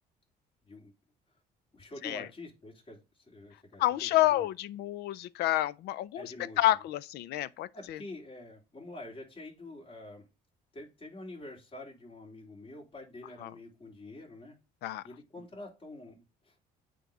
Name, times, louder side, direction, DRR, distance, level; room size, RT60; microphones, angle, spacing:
voice 1, 1.7-4.5 6.1-6.6 7.7-10.2 10.7-14.6 15.0-16.5, left 2 dB, 30° left, 3.3 m, -47 dB
voice 2, 3.8-8.0 13.4-13.5 14.8-15.0, left 15 dB, 75° left, 0.5 m, -29 dB
9.0 x 3.1 x 4.8 m
cardioid pair, 110°, 17 cm